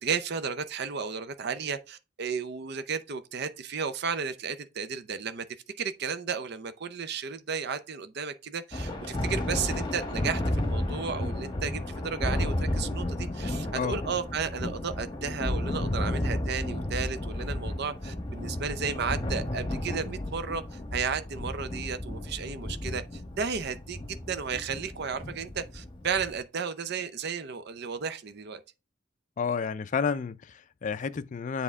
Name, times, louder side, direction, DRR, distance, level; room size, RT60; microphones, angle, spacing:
voice 1, 0.0-5.4 5.8-28.6, right 6 dB, 55° right, 0.6 m, -33 dB
Thunder, 8.7-26.4, left 1 dB, 25° left, 1.1 m, -33 dB
voice 2, 29.4-31.6, left 6 dB, 40° left, 0.4 m, -30 dB
7.7 x 3.6 x 3.5 m
head